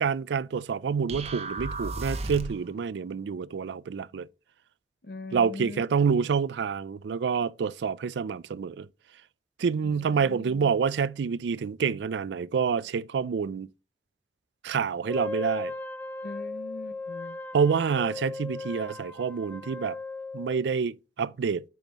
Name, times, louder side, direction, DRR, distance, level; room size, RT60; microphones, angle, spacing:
voice 1, 0.0-4.3 5.3-8.9 9.6-13.7 14.6-15.7 17.5-20.0 20.3-21.6, right 6 dB, 80° right, 0.4 m, -27 dB
sound 1, 1.1-2.7, right 2 dB, 35° right, 0.9 m, -34 dB
voice 2, 5.0-5.8 6.1-6.3 9.8-10.7 16.2-17.4, left 2 dB, 60° left, 0.8 m, -42 dB
Wind instrument woodwind instrument, 15.0-20.7, left 3 dB, 10° left, 0.4 m, -37 dB
8.9 x 5.4 x 2.9 m
head